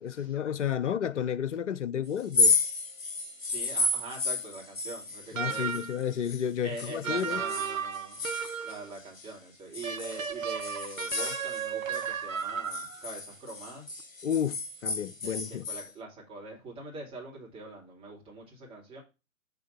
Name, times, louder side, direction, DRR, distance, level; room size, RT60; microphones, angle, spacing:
voice 1, 0.0-2.6 5.3-7.4 14.2-15.7, left 8 dB, 65° left, 0.6 m, -31 dB
sound 1, 2.2-6.5 6.8-9.3 9.7-12.1 12.4-15.9, left 3 dB, 80° left, 1.0 m, -32 dB
voice 2, 3.4-5.6 6.6-8.2 8.6-13.9 15.2-19.0, right 2 dB, 15° right, 2.4 m, -43 dB
sound 2, 5.3-6.0 7.0-8.9 9.8-13.0, right 7 dB, 80° right, 0.7 m, -34 dB
6.3 x 3.6 x 5.6 m
figure-of-eight pair, 115°, 40 cm